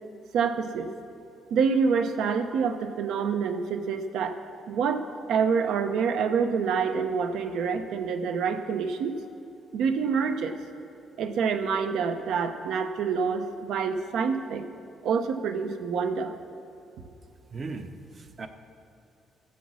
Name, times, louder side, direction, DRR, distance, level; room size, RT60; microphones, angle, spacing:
voice 1, 0.3-0.9 1.5-4.4 4.7-9.1 9.7-10.5 11.2-14.6 15.0-16.3, right 6 dB, 75° right, 8 dB, 0.8 m, -27 dB
voice 2, 17.5-18.5, right 3 dB, 30° right, 8 dB, 0.6 m, -38 dB
13.5 x 7.2 x 6.2 m, 2.8 s
cardioid pair, 170°, 0 cm